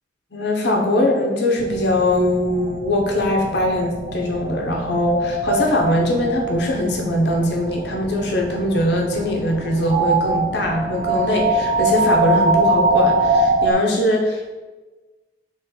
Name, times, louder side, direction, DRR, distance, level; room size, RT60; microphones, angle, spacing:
voice 1, 0.3-14.5, left 1 dB, 60° left, 0 dB, 0.7 m, -21 dB
sound 1, 1.6-13.7, right 2 dB, 40° right, 0.3 m, -23 dB
3.7 x 3.1 x 4.2 m, 1.2 s
head